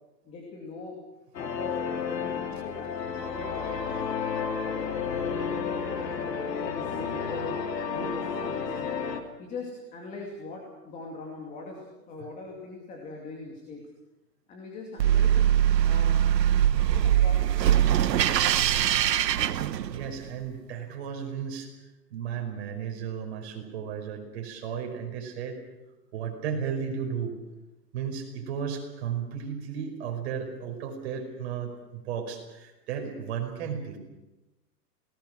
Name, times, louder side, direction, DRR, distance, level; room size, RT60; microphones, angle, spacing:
voice 1, 0.2-1.0 1.3-4.3 4.8-7.6 7.9-8.9 9.4-13.8 14.5-15.5 15.8-16.2 16.9-18.6, left 3 dB, 15° left, 0 dB, 2.5 m, -41 dB
sound 1, 1.3-9.2, left 6 dB, 75° left, 3.5 m, -31 dB
sound 2, 15.0-20.3, right 11 dB, 80° right, 1.2 m, -22 dB
voice 2, 19.9-21.7 22.1-25.6 26.1-27.3 27.9-34.0, right 7 dB, 40° right, 3 dB, 5.3 m, -34 dB
28.0 x 19.0 x 6.3 m, 1.0 s
hypercardioid pair, 165°, 50 cm